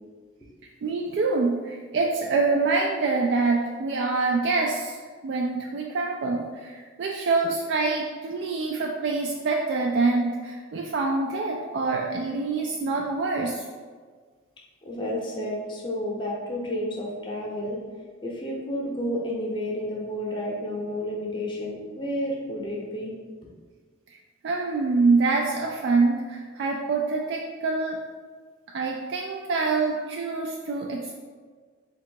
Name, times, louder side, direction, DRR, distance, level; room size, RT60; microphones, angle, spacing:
voice 1, 0.8-5.0 5.2-13.6 24.4-28.0 28.7-31.2, right 3 dB, 55° right, 0 dB, 0.3 m, -25 dB
voice 2, 14.8-17.8 18.2-23.1, left 1 dB, 25° left, -3 dB, 0.7 m, -31 dB
3.6 x 2.3 x 4.5 m, 1.5 s
head